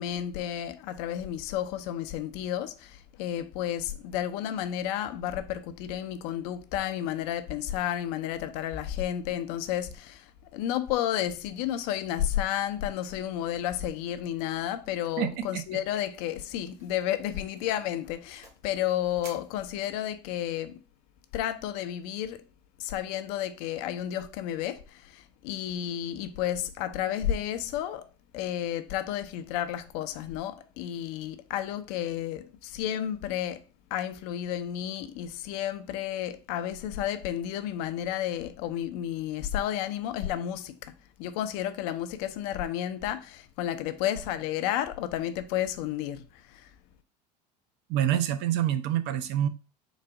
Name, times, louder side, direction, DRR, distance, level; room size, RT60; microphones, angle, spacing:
voice 1, 0.0-20.8 21.3-22.4 22.8-28.1 28.3-33.6 33.9-40.9 41.2-46.7, left 11 dB, 65° left, 0.6 m, -32 dB
sound 1, 14.4-14.7 15.0-15.2 15.5-15.6 16.1-16.4 16.8-17.0 17.5-18.7 19.2-20.2, right 3 dB, 85° right, 1.2 m, -52 dB
voice 2, 15.2-15.6 47.9-49.5, right 11 dB, 55° right, 0.6 m, -27 dB
4.0 x 2.5 x 4.7 m
hypercardioid pair, 85°, 21 cm